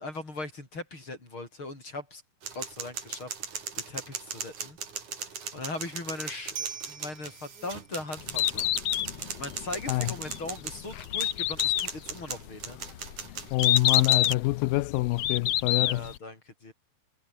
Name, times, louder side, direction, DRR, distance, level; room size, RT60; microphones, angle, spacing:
voice 1, 0.0-2.2 2.5-3.6 3.9-4.8 5.2-5.3 5.5-6.6 6.9-8.7 9.4-12.8 15.8-16.7, left 2 dB, 35° left, 8.2 m, -39 dB
sound 1, 2.4-14.3, right 6 dB, 60° right, 5.0 m, -38 dB
Bird, 8.2-16.2, left 12 dB, 65° left, 1.7 m, -28 dB
voice 2, 13.5-16.1, left 19 dB, 80° left, 2.4 m, -26 dB
omnidirectional pair, 4.1 m